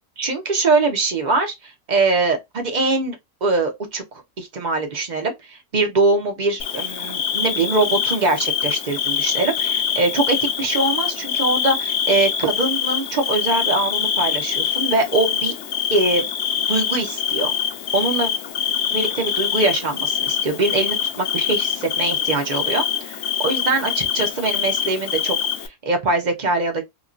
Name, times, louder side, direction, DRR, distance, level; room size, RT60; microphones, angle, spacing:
voice 1, 0.2-15.5 15.9-16.2 16.7-17.5 17.9-18.3 18.9-25.3 25.6-26.8, right 3 dB, 40° right, 0.7 m, -22 dB
Bird / Cricket, 6.6-25.7, left 9 dB, 65° left, 0.8 m, -24 dB
2.9 x 2.8 x 2.5 m
omnidirectional pair, 1.6 m